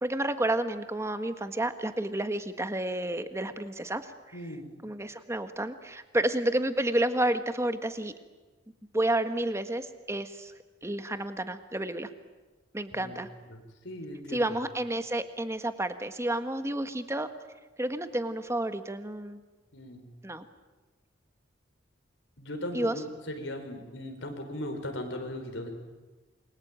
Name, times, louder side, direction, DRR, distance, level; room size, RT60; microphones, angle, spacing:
voice 1, 0.0-4.0 4.8-8.1 8.9-10.5 10.8-12.1 12.7-13.3 14.3-17.3 17.8-19.4 20.2-20.4 22.7-23.0, right 1 dB, 15° right, 9 dB, 1.6 m, -30 dB
voice 2, 4.3-4.7 12.9-13.2 13.5-14.6 19.7-20.1 22.4-25.7, left 1 dB, 80° left, 5 dB, 5.1 m, -38 dB
28.0 x 23.0 x 9.0 m, 1.2 s
head